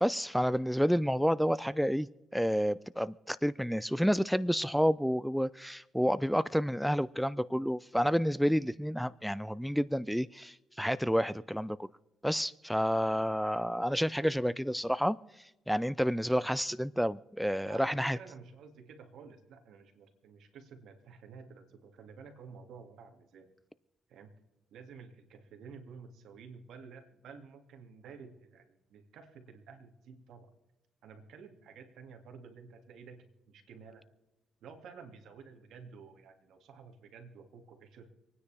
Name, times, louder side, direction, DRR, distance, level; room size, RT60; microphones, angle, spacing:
voice 1, 0.0-2.1 2.3-11.9 12.2-15.2 15.7-18.2, equal, ahead, 0.4 m, -29 dB
voice 2, 17.6-23.5 24.1-24.3 24.7-30.5 31.0-34.0 34.6-38.1, right 5 dB, 75° right, 2.2 m, -51 dB
26.5 x 9.7 x 3.4 m
cardioid pair, 90°, 0 cm